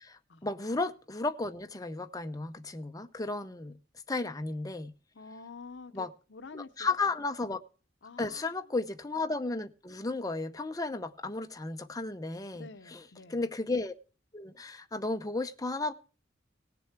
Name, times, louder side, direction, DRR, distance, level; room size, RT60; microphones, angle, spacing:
voice 1, 0.0-3.8 4.1-4.9 5.9-6.1 6.5-7.6 8.2-13.0 13.3-13.9 14.3-15.9, left 3 dB, 20° left, 0.7 m, -34 dB
voice 2, 5.1-6.9 8.0-8.7 12.5-13.4, left 4 dB, 70° left, 0.8 m, -48 dB
18.0 x 7.0 x 4.5 m
head